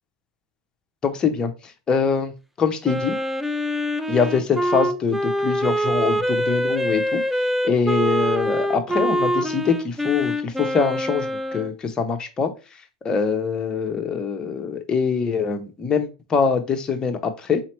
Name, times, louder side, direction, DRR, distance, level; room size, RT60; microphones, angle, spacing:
voice 1, 1.0-1.5 1.9-3.2 4.1-7.2 7.6-11.3 11.5-12.5 13.0-17.6, left 5 dB, 25° left, 5 dB, 0.8 m, -23 dB
Wind instrument woodwind instrument, 2.8-11.7, equal, 5° right, 0.4 m, -24 dB
4.2 x 2.8 x 3.1 m, 0.30 s
hypercardioid pair, 100°, 3 cm